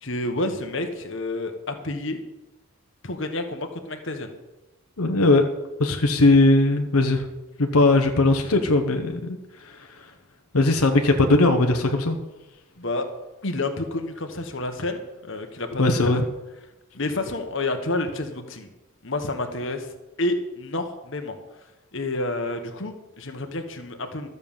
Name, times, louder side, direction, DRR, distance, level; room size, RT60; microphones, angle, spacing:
voice 1, 0.0-2.2 3.0-4.3 12.8-13.1 13.4-16.1 16.9-18.7 19.0-19.9 20.2-21.4 21.9-24.3, left 2 dB, 60° left, 6 dB, 1.4 m, -29 dB
voice 2, 5.0-5.4 5.8-7.3 7.6-9.4 9.6-10.1 10.5-12.2 15.8-16.2, left 2 dB, 85° left, 5 dB, 1.0 m, -19 dB
13.0 x 6.9 x 7.3 m, 1.0 s
head